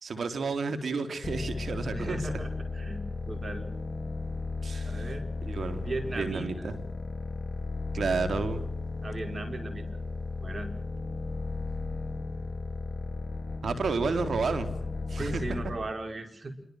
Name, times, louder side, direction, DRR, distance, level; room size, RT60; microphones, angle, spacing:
voice 1, 0.0-2.2 4.6-5.0 5.4-5.9 6.1-6.7 7.9-8.6 13.6-14.8 15.1-15.4, right 4 dB, 85° right, 8 dB, 3.3 m, -31 dB
sound 1, 1.2-15.9, left 3 dB, 55° left, 4.5 m, -35 dB
voice 2, 1.9-3.7 4.9-5.3 5.8-6.7 9.0-9.9 10.4-10.7 15.2-16.5, right 2 dB, 55° right, 7 dB, 5.5 m, -37 dB
27.5 x 24.5 x 6.3 m, 0.72 s
cardioid pair, 40°, 0 cm